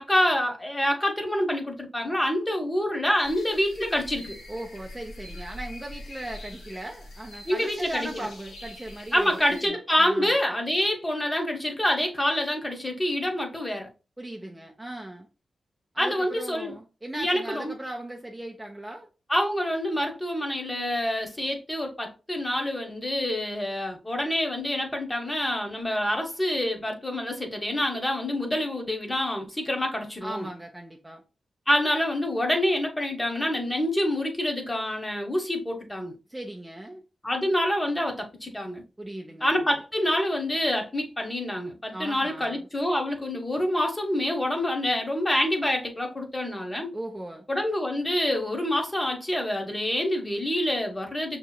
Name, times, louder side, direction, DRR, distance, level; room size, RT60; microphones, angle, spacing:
voice 1, 0.0-4.4 7.5-8.3 9.1-13.9 16.0-16.7 17.1-17.7 19.3-30.5 31.7-36.1 37.2-38.8 39.4-46.9 47.5-51.4, left 1 dB, 15° left, 1.0 m, -27 dB
sound 1, 3.2-9.7, left 1 dB, 80° left, 1.2 m, -44 dB
voice 2, 4.5-9.3 9.6-10.4 14.2-15.3 15.9-19.1 30.2-31.2 36.3-37.0 39.0-39.7 41.9-42.7 46.9-47.5, right 1 dB, 10° right, 0.6 m, -38 dB
6.0 x 2.9 x 2.2 m
wide cardioid pair, 105°, 0 cm